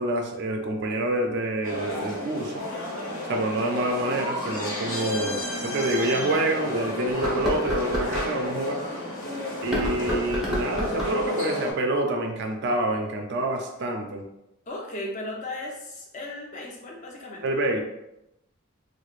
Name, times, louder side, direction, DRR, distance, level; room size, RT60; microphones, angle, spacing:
voice 1, 0.0-2.6 3.3-8.8 9.6-14.3 17.4-17.8, right 1 dB, 55° right, 3 dB, 0.4 m, -27 dB
sound 1, 1.6-11.7, left 1 dB, 80° left, 1.1 m, -31 dB
sound 2, 5.1-5.2 5.8-5.9 7.1-8.3 9.6-11.3, equal, ahead, 0.7 m, -29 dB
voice 2, 14.7-17.4, left 2 dB, 35° left, -1 dB, 0.7 m, -36 dB
4.7 x 2.0 x 2.4 m, 0.88 s
head